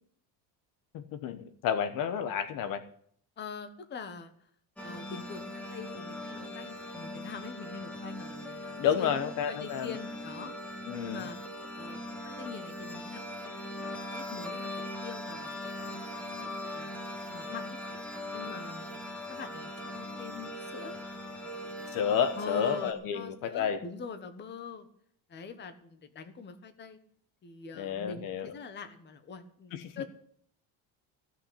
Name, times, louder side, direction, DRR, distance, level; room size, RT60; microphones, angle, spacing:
voice 1, 0.9-2.8 8.8-9.9 10.9-11.3 21.9-23.8 27.7-28.6 29.7-30.0, left 8 dB, 55° left, 10 dB, 1.1 m, -31 dB
voice 2, 3.4-4.3 4.8-9.2 9.5-10.5 11.0-11.4 11.7-12.0 12.2-13.5 13.8-16.9 17.3-17.8 18.3-18.9 19.3-20.9 22.4-24.9 25.3-27.0 27.4-30.0, left 5 dB, 25° left, 9 dB, 1.3 m, -44 dB
sound 1, 4.8-22.9, left 1 dB, 5° left, 1.7 m, -40 dB
15.5 x 6.2 x 9.9 m, 0.62 s
cardioid pair, 165°, 39 cm